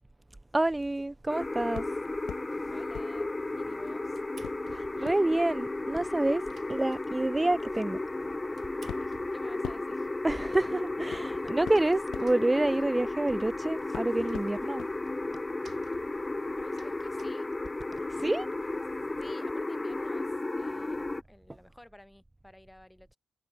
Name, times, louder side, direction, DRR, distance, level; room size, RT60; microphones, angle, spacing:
voice 1, 0.5-1.9 4.7-6.4 6.7-8.3 10.2-14.9 18.0-18.5, right 2 dB, 20° right, 1.7 m, -28 dB
sound 1, 1.3-21.2, left 2 dB, 25° left, 2.2 m, -34 dB
sound 2, 1.7-2.5 2.9-3.9 4.4-13.5 13.9-14.9 15.3-15.4, left 11 dB, 85° left, 0.9 m, -46 dB
sound 3, 2.5-2.9 3.5-5.2 5.5-5.6 5.8-5.9 6.2-7.5 8.1-9.9 10.4-10.5 10.8-10.9 11.1-13.1 13.5-18.1, right 6 dB, 65° right, 4.5 m, -57 dB
voice 2, 2.7-4.2 8.8-10.1 11.1-11.6 16.6-17.5 19.2-23.2, left 1 dB, 10° left, 6.1 m, -53 dB
supercardioid pair, 45°, 0 cm